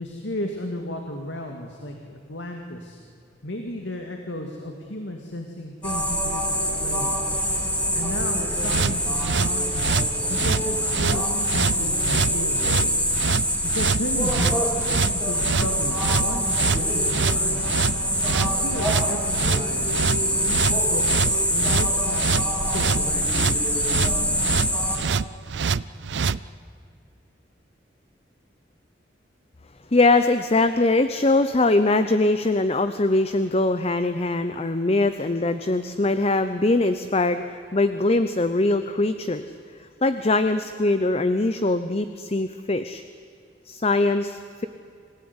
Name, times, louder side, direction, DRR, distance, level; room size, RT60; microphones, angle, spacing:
voice 1, 0.0-3.0 3.4-7.2 7.9-9.9 10.3-13.0 13.6-14.8 15.2-17.7 18.4-21.2 21.5-23.5, left 1 dB, 90° left, 3 dB, 2.3 m, -34 dB
sound 1, 5.8-25.0, equal, 5° left, 3.6 m, -24 dB
sound 2, 8.6-26.4, right 5 dB, 70° right, 0.5 m, -26 dB
voice 2, 29.9-39.5 40.0-43.0 43.7-44.7, left 2 dB, 35° left, 10 dB, 0.8 m, -22 dB
26.5 x 17.0 x 9.7 m, 2.3 s
head